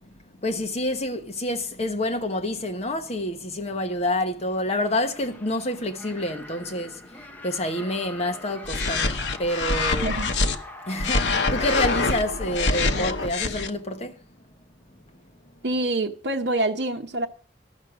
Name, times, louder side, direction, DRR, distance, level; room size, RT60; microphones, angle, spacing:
voice 1, 0.0-10.2 10.9-14.2 14.9-15.0, left 1 dB, 40° left, 1.2 m, -28 dB
sound 1, 4.4-13.3, left 1 dB, 10° left, 0.9 m, -44 dB
sound 2, 8.6-10.5 11.0-13.7, left 3 dB, 85° left, 1.0 m, -25 dB
voice 2, 10.0-10.3 15.6-17.3, right 2 dB, 70° right, 0.9 m, -26 dB
13.0 x 6.4 x 6.1 m
head